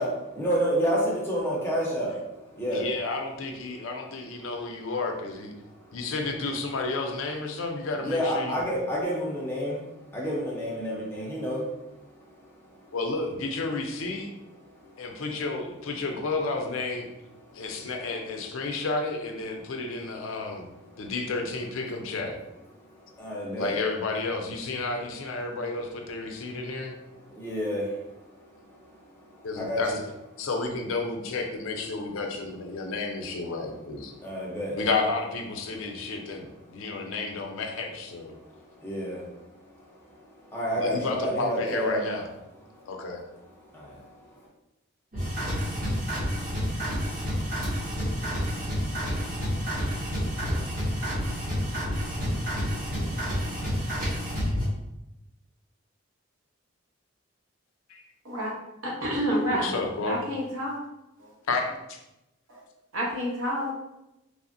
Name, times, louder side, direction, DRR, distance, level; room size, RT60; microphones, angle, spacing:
voice 1, 0.0-2.9 3.7-3.9 4.3-4.8 5.6-6.1 8.0-13.0 14.5-15.2 17.3-17.9 19.6-19.7 20.2-21.1 22.7-23.8 26.3-30.0 30.4-30.5 32.8-32.9 34.1-34.8 35.9-37.2 38.3-42.3 42.6-44.5, equal, 10° left, -4 dB, 0.5 m, -32 dB
voice 2, 2.7-5.5 5.9-8.7 12.9-14.3 15.0-17.1 17.5-20.7 21.0-22.4 23.6-26.9 29.4-34.1 34.7-38.3 40.7-42.3 42.9-43.2 57.9-58.0 59.5-60.2 61.5-62.0, left 3 dB, 75° left, 3 dB, 0.4 m, -31 dB
sound 1, 45.1-54.7, equal, 40° right, 1.0 m, -29 dB
voice 3, 58.8-59.7 60.0-60.8 61.2-61.3 62.5-62.6 62.9-63.7, equal, 90° right, -3 dB, 0.9 m, -29 dB
3.2 x 2.0 x 2.5 m, 0.92 s
head